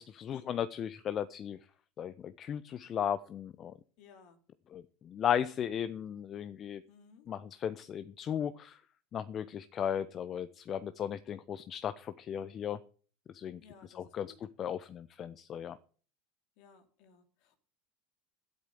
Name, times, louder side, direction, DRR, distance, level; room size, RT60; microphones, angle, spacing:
voice 1, 0.0-1.6 2.0-3.7 4.7-6.8 7.3-8.8 9.1-12.8 13.3-13.6 13.9-14.3 14.6-15.8, left 9 dB, 40° left, 0.8 m, -36 dB
voice 2, 4.0-4.4 6.9-7.3 13.6-14.4 16.6-17.6, left 6 dB, 60° left, 3.0 m, -58 dB
12.0 x 8.3 x 7.0 m
hypercardioid pair, 80°, 0 cm